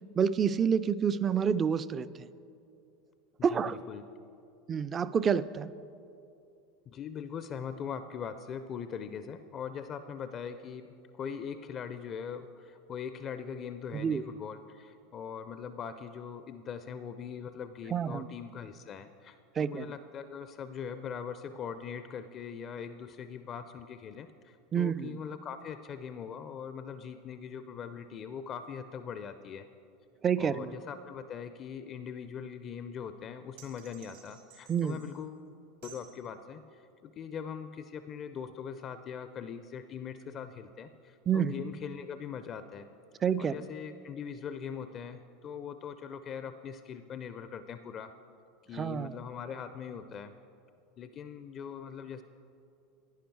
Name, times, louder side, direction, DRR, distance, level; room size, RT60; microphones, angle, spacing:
voice 1, 0.2-2.3 3.4-3.8 4.7-5.7 13.9-14.2 17.9-18.3 19.5-19.9 24.7-25.2 30.2-30.7 34.7-35.0 41.3-41.6 43.2-43.6 48.7-49.2, right 7 dB, 30° right, 15 dB, 0.3 m, -28 dB
voice 2, 3.5-4.0 6.9-29.7 30.4-35.4 35.8-42.9 43.4-48.1 48.7-50.3 51.0-52.2, left 7 dB, 40° left, 11 dB, 0.4 m, -41 dB
sound 1, 33.6-35.2 35.8-36.2, right 7 dB, 75° right, 1.8 m, -55 dB
10.5 x 9.9 x 4.6 m, 2.6 s
hypercardioid pair, 85°, 0 cm